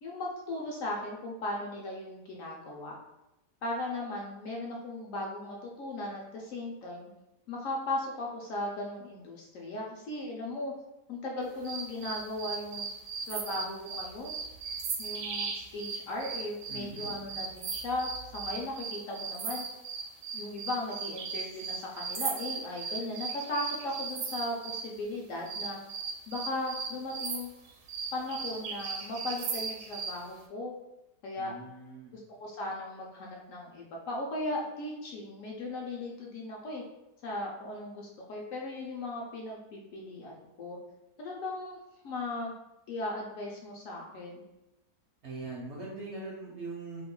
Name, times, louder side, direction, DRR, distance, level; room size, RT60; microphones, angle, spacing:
voice 1, 0.0-3.0 3.6-7.1 7.5-10.7 11.1-12.9 13.3-14.4 15.0-19.6 20.3-25.8 26.3-27.5 28.1-30.7 31.2-31.5 32.1-36.8 37.2-40.8 41.2-41.8 42.0-42.5 42.9-44.4, left 2 dB, 70° left, -2 dB, 0.8 m, -37 dB
sound 1, 11.6-24.9 25.5-30.2, right 5 dB, 80° right, 1.2 m, -37 dB
voice 2, 16.7-17.1 31.4-32.1 45.2-47.0, right 3 dB, 65° right, -4 dB, 0.7 m, -41 dB
2.8 x 2.3 x 3.7 m, 0.95 s
omnidirectional pair, 1.7 m